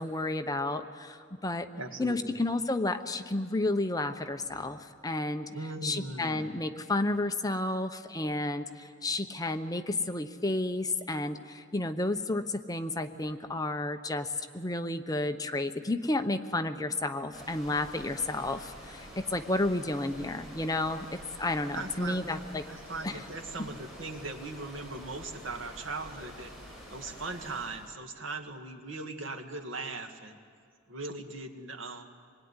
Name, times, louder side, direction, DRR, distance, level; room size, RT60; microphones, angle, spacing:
voice 1, 0.0-1.7 2.0-5.5 5.8-22.6 23.0-23.2, left 2 dB, 20° left, 8 dB, 0.9 m, -31 dB
voice 2, 1.8-2.3 5.5-6.5 21.7-22.4 22.7-26.5 26.9-30.4 30.9-32.0, right 3 dB, 75° right, 4 dB, 2.1 m, -39 dB
sound 1, 17.3-27.9, equal, ahead, 7.3 m, -48 dB
26.5 x 21.0 x 9.7 m, 2.1 s
head